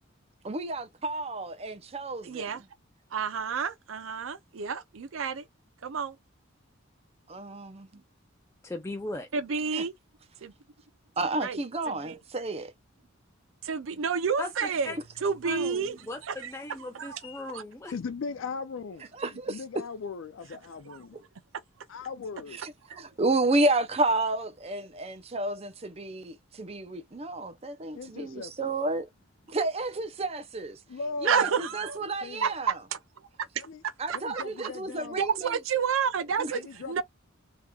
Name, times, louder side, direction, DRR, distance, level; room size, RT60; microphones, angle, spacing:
voice 1, 0.4-2.7 7.3-8.0 9.7-9.8 11.2-12.7 19.1-19.8 22.6-29.1 29.5-30.8 31.2-32.8 34.0-35.6 36.4-36.6, right 2 dB, 30° right, 0.6 m, -31 dB
voice 2, 2.2-2.6 3.1-5.4 5.8-6.1 9.3-9.9 10.4-10.5 11.4-11.6 12.0-12.2 13.6-14.9 15.2-16.0 16.3-16.4 16.9-17.2 17.5-17.6 20.9-21.0 22.9-23.0 31.3-32.0 32.4-33.0 34.1-34.7 35.2-36.6 36.9-37.0, right 6 dB, 80° right, 0.5 m, -29 dB
voice 3, 8.6-9.3 14.4-15.0 15.4-17.9, left 2 dB, 15° left, 0.5 m, -38 dB
voice 4, 17.9-19.0 19.5-21.2 21.9-22.6 27.9-28.7 30.9-31.6 32.2-32.5 33.6-33.8 34.1-35.2 36.5-37.0, left 4 dB, 70° left, 0.4 m, -38 dB
3.6 x 2.9 x 2.3 m
head